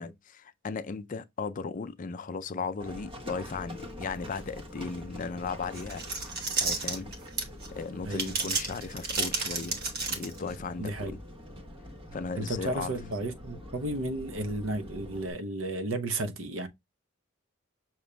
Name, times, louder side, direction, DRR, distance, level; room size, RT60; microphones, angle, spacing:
voice 1, 0.0-6.0 6.6-7.1 7.7-11.2 12.1-12.9, left 4 dB, 40° left, 0.4 m, -36 dB
Livestock farm animals working animals, 2.8-15.3, left 1 dB, 25° right, 1.2 m, -45 dB
sound 1, 5.7-7.7 8.1-10.6, right 4 dB, 50° right, 1.2 m, -31 dB
voice 2, 10.8-11.2 12.4-16.7, right 2 dB, 70° right, 0.7 m, -33 dB
6.6 x 2.9 x 2.2 m
head